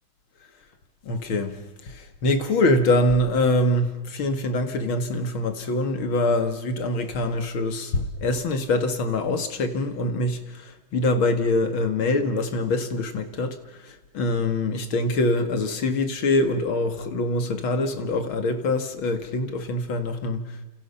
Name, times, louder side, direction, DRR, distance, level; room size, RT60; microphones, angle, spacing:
voice 1, 1.0-20.6, left 2 dB, 70° left, 2.7 m, -24 dB
29.5 x 28.0 x 5.7 m
omnidirectional pair, 2.3 m